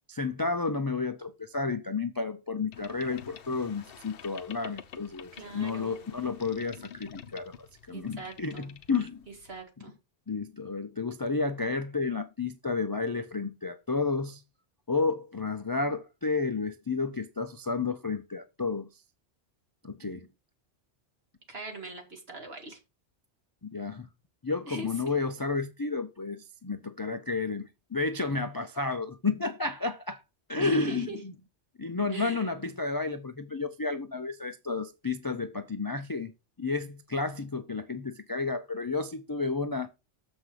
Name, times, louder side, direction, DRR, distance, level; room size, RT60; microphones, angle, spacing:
voice 1, 0.1-9.2 10.3-14.4 14.9-18.9 19.8-20.3 23.6-24.1 24.4-30.2 30.5-31.3 31.8-36.3 36.6-39.9, left 4 dB, 30° left, 0.4 m, -31 dB
Boat Water vehicle, 2.7-9.6, left 8 dB, 55° left, 0.8 m, -49 dB
voice 2, 5.3-6.1 7.9-8.7 9.5-9.9 21.5-22.8 24.7-24.9 30.6-31.2 32.1-32.5, right 3 dB, 55° right, 2.3 m, -41 dB
7.2 x 5.9 x 4.9 m
omnidirectional pair, 1.2 m